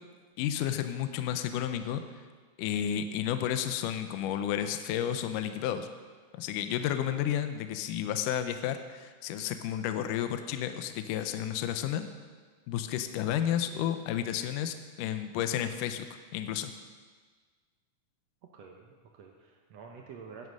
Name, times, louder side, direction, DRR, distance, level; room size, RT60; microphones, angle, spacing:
voice 1, 0.4-2.0 2.6-5.9 6.3-12.1 12.7-16.1 16.3-16.7, left 10 dB, 80° left, 9 dB, 2.0 m, -31 dB
voice 2, 18.5-20.5, right 5 dB, 75° right, 1 dB, 1.6 m, -49 dB
11.0 x 9.4 x 6.5 m, 1.5 s
omnidirectional pair, 4.2 m